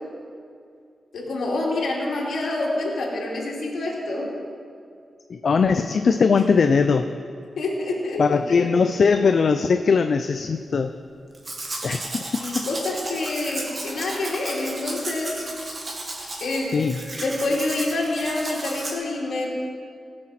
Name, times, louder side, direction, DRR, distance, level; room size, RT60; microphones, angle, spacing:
voice 1, 1.1-4.3 6.3-6.4 7.6-8.2 12.4-15.4 16.4-16.7 17.2-19.5, left 2 dB, 70° left, -4 dB, 2.6 m, -27 dB
voice 2, 5.3-7.0 8.2-10.9 11.8-12.1 12.5-12.7 16.7-17.0, left 5 dB, 55° left, 8 dB, 0.4 m, -20 dB
Domestic sounds home sounds, 11.3-18.9, right 2 dB, 35° right, 1.8 m, -34 dB
17.5 x 6.5 x 5.9 m, 2.3 s
wide cardioid pair, 135°, 0 cm